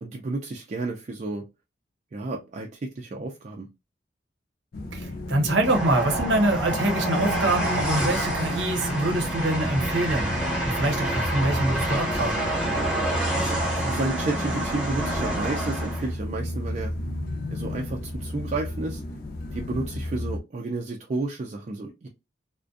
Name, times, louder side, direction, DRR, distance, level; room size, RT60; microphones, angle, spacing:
voice 1, 0.0-1.5 2.1-3.7 13.4-16.9 17.5-19.0 19.5-22.1, right 2 dB, 40° right, 0.4 m, -31 dB
sound 1, 4.7-20.4, left 1 dB, 55° left, 0.5 m, -32 dB
voice 2, 4.9-10.3 10.6-12.3, right 2 dB, 85° right, 0.7 m, -25 dB
Train, 5.6-16.1, right 1 dB, 5° right, 0.7 m, -28 dB
2.5 x 2.1 x 2.4 m
head